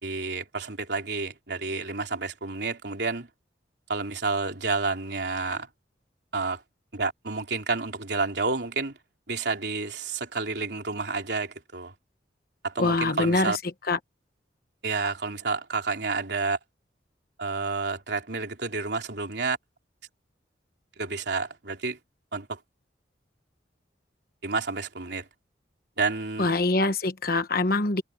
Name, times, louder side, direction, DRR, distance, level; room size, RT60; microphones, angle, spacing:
voice 1, 0.0-3.3 3.9-5.7 6.3-6.6 6.9-9.0 9.3-11.9 12.6-13.6 14.8-16.6 17.4-19.6 21.0-22.0 22.3-22.6 24.4-25.3 26.0-26.5, right 4 dB, 65° right, 3.5 m, -30 dB
voice 2, 12.8-13.6 13.9-14.0 26.4-28.0, left 2 dB, 55° left, 1.2 m, -24 dB
head